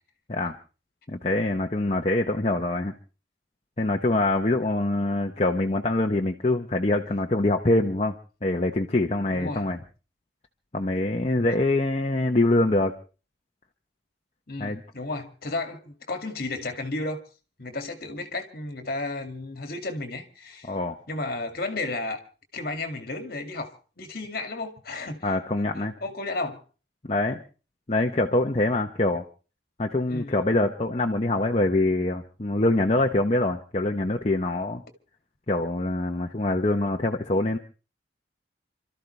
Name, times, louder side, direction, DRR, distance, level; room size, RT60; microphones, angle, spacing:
voice 1, 1.1-2.9 3.8-8.1 8.4-9.8 10.7-12.9 14.6-14.8 20.7-21.0 25.2-25.9 27.1-27.4 27.9-29.2 29.8-34.8 35.5-37.6, left 2 dB, 35° left, 0.9 m, -24 dB
voice 2, 9.3-9.7 14.5-17.2 17.6-20.8 21.1-22.2 22.5-25.4 25.7-26.6 30.1-30.4, left 2 dB, 55° left, 2.2 m, -33 dB
28.0 x 13.5 x 3.3 m
head